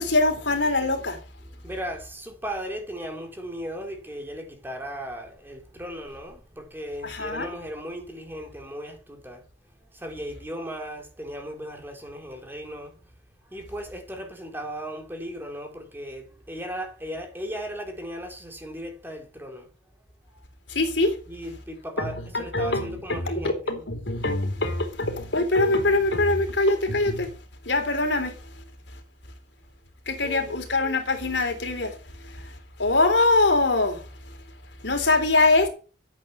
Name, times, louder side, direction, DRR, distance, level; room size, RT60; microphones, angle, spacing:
voice 1, 0.0-1.2 7.0-7.5 20.7-21.1 22.0-27.3 27.7-28.3 30.1-31.9 32.8-34.0 34.8-35.7, left 2 dB, 70° left, 3.6 m, -23 dB
voice 2, 1.4-9.4 9.9-13.0 13.5-19.7 21.3-23.8 30.2-30.6, equal, 10° right, 3.3 m, -36 dB
13.0 x 8.7 x 6.9 m
head